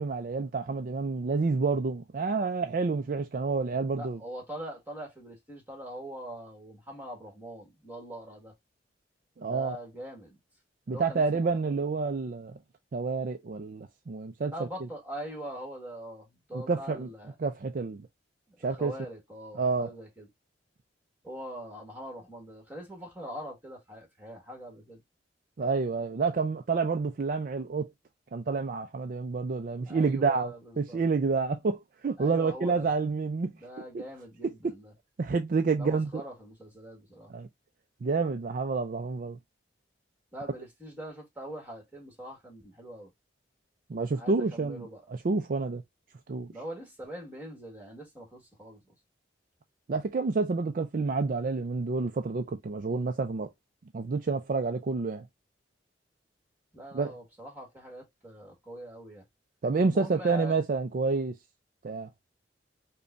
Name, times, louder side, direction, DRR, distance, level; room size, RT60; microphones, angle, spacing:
voice 1, 0.0-4.2 9.4-9.8 10.9-12.6 12.9-14.7 16.5-17.1 17.4-18.1 18.6-18.9 19.6-19.9 25.6-27.9 28.3-33.5 34.4-34.7 35.2-36.1 37.3-37.5 38.0-39.4 43.9-45.8 46.3-46.5 49.9-53.5 53.9-55.3 56.9-57.1 59.6-61.4 61.8-62.1, right 4 dB, 50° right, 0.4 m, -29 dB
voice 2, 4.0-8.5 9.4-10.4 10.9-11.5 14.5-17.3 18.5-20.3 21.2-25.0 29.8-31.0 32.2-32.9 33.4-34.9 35.8-37.3 40.3-43.1 44.0-45.0 46.5-48.9 56.7-59.2 59.8-60.6, equal, 10° right, 1.6 m, -43 dB
5.2 x 2.2 x 2.5 m
head